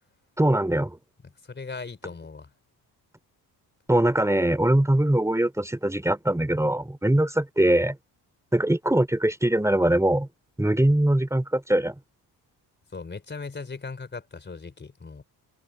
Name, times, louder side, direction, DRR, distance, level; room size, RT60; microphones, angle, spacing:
voice 1, 0.4-1.0 3.9-8.0 8.5-10.3 10.6-12.0, right 1 dB, 5° right, 3.4 m, -22 dB
voice 2, 1.2-2.5 12.9-15.2, left 4 dB, 25° left, 4.2 m, -38 dB
cardioid pair, 100°, 40 cm